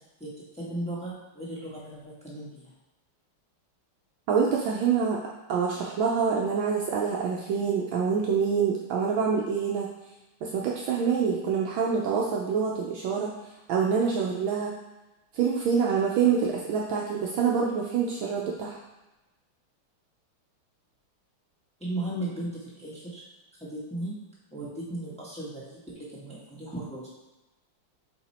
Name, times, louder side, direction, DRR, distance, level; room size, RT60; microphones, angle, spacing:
voice 1, 0.2-2.7 21.8-23.2 23.6-24.2 24.5-27.1, right 1 dB, 5° left, -7 dB, 1.2 m, -36 dB
voice 2, 4.3-5.2 5.5-9.9 10.4-13.3 13.7-14.7 15.3-18.8, right 6 dB, 75° right, -2 dB, 1.4 m, -26 dB
8.0 x 2.9 x 4.2 m, 1.0 s
omnidirectional pair, 2.3 m